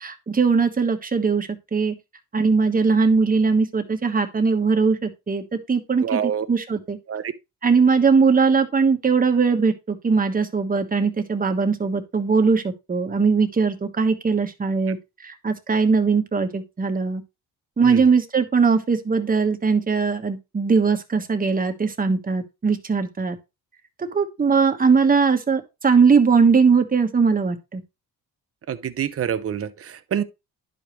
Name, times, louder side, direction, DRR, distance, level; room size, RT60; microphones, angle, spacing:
voice 1, 0.0-1.9 2.3-6.2 6.5-7.0 7.6-15.0 15.2-17.2 17.8-23.4 24.0-27.8, right 5 dB, 25° right, 1.3 m, -20 dB
voice 2, 6.0-6.5 7.1-7.3 17.8-18.0 28.7-30.2, right 8 dB, 40° right, 0.9 m, -26 dB
10.5 x 5.2 x 3.1 m
cardioid pair, 100°, 35 cm